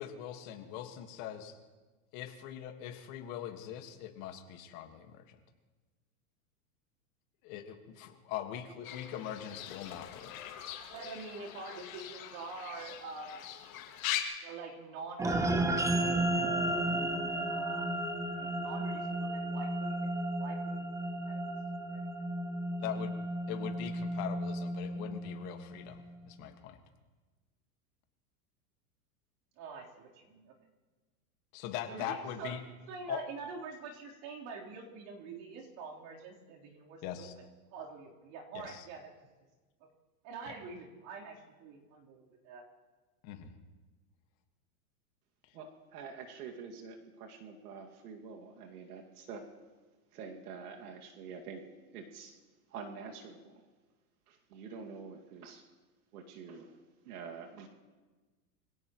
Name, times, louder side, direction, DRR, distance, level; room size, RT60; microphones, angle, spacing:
voice 1, 0.0-1.6 2.1-5.4 7.4-10.3 22.8-23.2 23.5-26.8 31.5-32.6 33.1-33.2 37.0-37.3 38.5-38.8 40.5-40.6 43.2-43.5, left 10 dB, 40° left, 6 dB, 1.7 m, -41 dB
Fowl / Bird, 8.8-14.2, left 12 dB, 60° left, 2.5 m, -41 dB
voice 2, 10.9-13.5 14.4-16.3 16.9-17.9 18.3-20.1 20.4-20.9 21.2-21.6 21.9-22.0 29.6-30.5 31.9-32.6 32.9-37.5 37.7-39.1 40.2-42.6, right 4 dB, 45° right, -2 dB, 3.8 m, -46 dB
sound 1, 15.2-25.8, right 1 dB, 5° right, 0.7 m, -33 dB
voice 3, 45.5-49.5 50.1-51.6 51.9-52.3 52.7-53.6 54.3-55.6 56.1-56.8 57.0-57.7, right 5 dB, 75° right, 2 dB, 2.3 m, -46 dB
25.0 x 17.0 x 3.1 m, 1.3 s
supercardioid pair, 145°, 46 cm